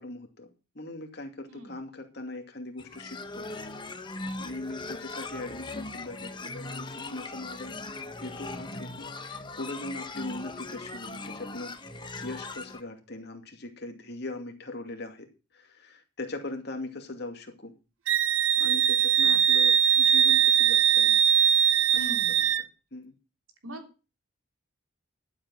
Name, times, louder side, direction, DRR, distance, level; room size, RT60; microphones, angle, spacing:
voice 1, 0.0-3.5 3.9-4.1 4.4-7.8 8.2-11.7 12.2-15.3 15.5-17.7 18.6-21.2 21.9-22.3 22.9-23.1, left 2 dB, 50° left, 4 dB, 2.6 m, -40 dB
voice 2, 1.5-1.8 19.2-19.5 21.9-22.4 23.6-23.9, left 1 dB, 85° right, 5 dB, 3.3 m, -41 dB
sound 1, 2.8-12.8, left 2 dB, 20° left, 1.1 m, -39 dB
Wind instrument woodwind instrument, 18.1-22.6, right 9 dB, 70° right, 0.8 m, -21 dB
12.5 x 8.0 x 6.1 m, 0.32 s
head